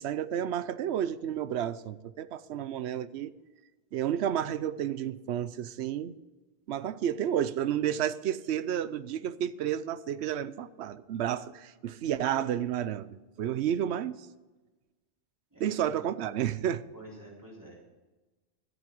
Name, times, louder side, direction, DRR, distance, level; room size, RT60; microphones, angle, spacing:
voice 1, 0.0-3.3 3.9-6.1 6.7-14.2 15.6-16.8, right 10 dB, 75° right, 0.9 m, -31 dB
voice 2, 15.5-15.9 16.9-17.8, right 1 dB, 15° right, 4.0 m, -49 dB
14.0 x 7.4 x 7.7 m
omnidirectional pair, 1.1 m